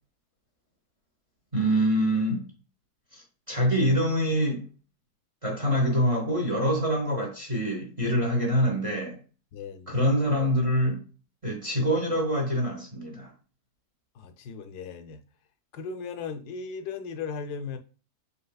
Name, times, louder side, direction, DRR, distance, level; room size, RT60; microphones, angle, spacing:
voice 1, 1.5-2.5 3.1-4.7 5.4-9.2 9.9-11.0 11.4-13.3, equal, 25° right, 0.8 m, -25 dB
voice 2, 9.5-10.0 14.1-15.2 15.7-17.8, left 5 dB, 75° left, 1.1 m, -37 dB
5.4 x 3.4 x 2.3 m
omnidirectional pair, 1.8 m